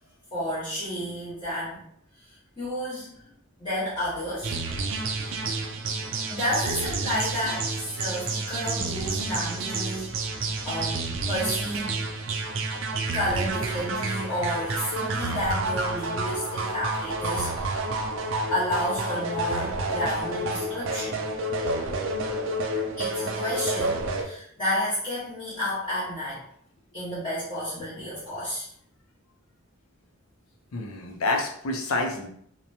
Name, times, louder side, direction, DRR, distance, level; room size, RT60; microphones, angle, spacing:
voice 1, 0.3-1.8 2.6-3.1 3.6-4.5 6.3-7.7 7.9-10.1 10.6-11.9 13.1-17.9 18.5-21.2 23.0-26.4 26.9-28.7, equal, 25° left, -13 dB, 0.9 m, -31 dB
sound 1, 4.4-24.2, right 2 dB, 65° right, 0.4 m, -29 dB
voice 2, 30.7-32.3, left 2 dB, 75° left, 2 dB, 0.5 m, -28 dB
2.8 x 2.1 x 2.6 m, 0.66 s
head